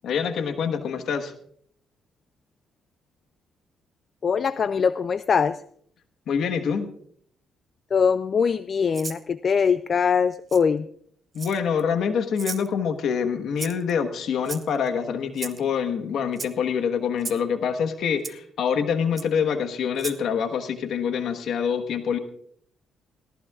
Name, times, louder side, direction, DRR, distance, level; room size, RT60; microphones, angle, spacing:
voice 1, 0.0-1.3 6.3-6.9 11.3-22.2, left 7 dB, 70° left, 8 dB, 1.3 m, -26 dB
voice 2, 4.2-5.6 7.9-10.9, left 6 dB, 45° left, 14 dB, 0.4 m, -22 dB
Rattle (instrument), 8.9-9.2 10.5-10.6 11.3-11.8 12.4-12.7 13.6-13.9 14.4-14.9 15.4-15.6 16.3-16.5 17.2-17.4 18.2-18.3 19.2-19.3 19.9-20.2, right 4 dB, 35° right, 1.0 m, -35 dB
20.0 x 17.0 x 2.4 m, 0.64 s
cardioid pair, 90°, 0 cm